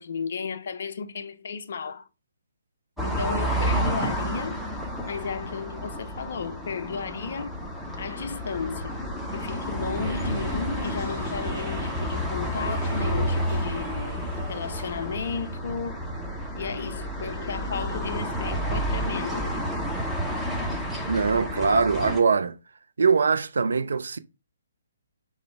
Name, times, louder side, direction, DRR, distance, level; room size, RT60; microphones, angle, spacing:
voice 1, 0.0-2.1 3.0-4.7 5.1-7.6 8.0-9.0 9.3-14.1 14.5-16.0 16.6-19.7, left 5 dB, 50° left, 0.4 m, -34 dB
sound 1, 3.0-22.2, equal, ahead, 0.5 m, -30 dB
sound 2, 10.0-15.0, equal, 20° right, 1.0 m, -42 dB
voice 2, 21.1-22.5 23.0-24.2, right 5 dB, 60° right, 0.3 m, -22 dB
4.8 x 2.1 x 3.4 m
figure-of-eight pair, 130°, 0 cm